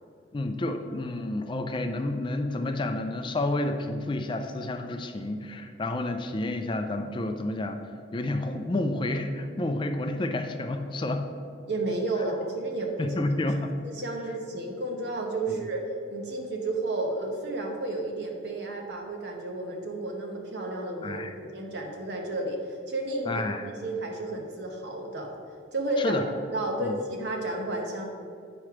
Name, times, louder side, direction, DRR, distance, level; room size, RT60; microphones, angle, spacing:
voice 1, 0.3-7.8 8.1-11.2 13.0-13.7 15.6-15.7 21.0-21.3 23.3-23.7 26.0-26.2 26.8-27.0, left 2 dB, 25° left, 6 dB, 0.4 m, -30 dB
voice 2, 11.7-13.1 13.8-15.8 16.1-25.3 25.7-26.2 26.5-28.0, right 2 dB, 65° right, 1 dB, 1.1 m, -32 dB
8.8 x 3.2 x 5.9 m, 2.3 s
head